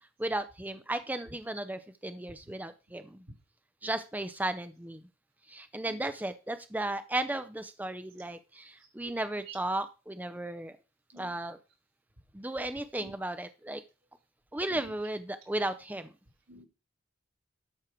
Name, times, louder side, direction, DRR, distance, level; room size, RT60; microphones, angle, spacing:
voice 1, 0.2-3.2 3.8-5.0 5.5-10.8 11.2-11.6 12.3-13.8 14.5-16.1, right 1 dB, 10° right, 10 dB, 0.6 m, -35 dB
voice 2, 5.8-6.0 9.5-9.6 11.1-11.4 13.0-13.1 14.7-14.9 16.5-16.7, right 5 dB, 80° right, -2 dB, 4.5 m, -49 dB
12.5 x 6.4 x 4.5 m, 0.30 s
head